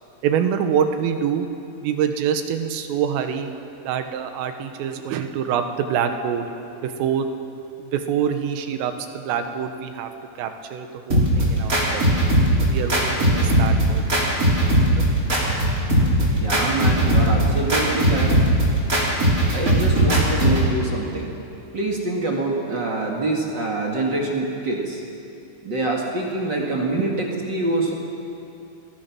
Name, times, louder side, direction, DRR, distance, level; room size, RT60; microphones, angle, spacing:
voice 1, 0.2-1.5 1.8-3.5 3.8-6.5 6.8-7.3 7.8-10.1 10.4-12.2 12.6-14.3 14.7-15.0, right 8 dB, 80° right, 6 dB, 3.9 m, -25 dB
sound 1, 11.1-20.7, right 1 dB, 20° right, 4.0 m, -19 dB
voice 2, 16.3-18.3 19.5-21.3 21.7-25.0 25.6-28.0, right 2 dB, 55° right, -2 dB, 1.2 m, -25 dB
29.0 x 22.0 x 6.1 m, 2.8 s
omnidirectional pair, 5.9 m